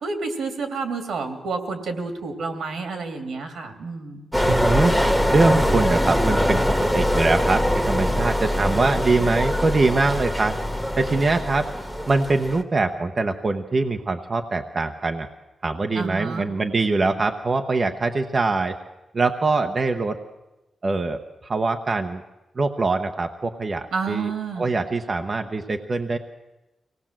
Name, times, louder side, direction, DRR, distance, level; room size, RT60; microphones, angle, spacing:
voice 1, 0.0-4.2 15.9-16.5 23.9-24.7, right 4 dB, 80° right, 7 dB, 2.9 m, -29 dB
sound 1, 4.3-12.6, equal, ahead, 1.4 m, -23 dB
voice 2, 4.4-5.0 5.3-10.6 11.0-11.7 12.1-15.3 15.6-18.7 19.1-20.2 20.8-22.2 22.6-24.3 24.6-26.2, right 3 dB, 35° right, 5 dB, 0.9 m, -23 dB
24.5 x 18.0 x 7.5 m, 1.0 s
wide cardioid pair, 150°, 0 cm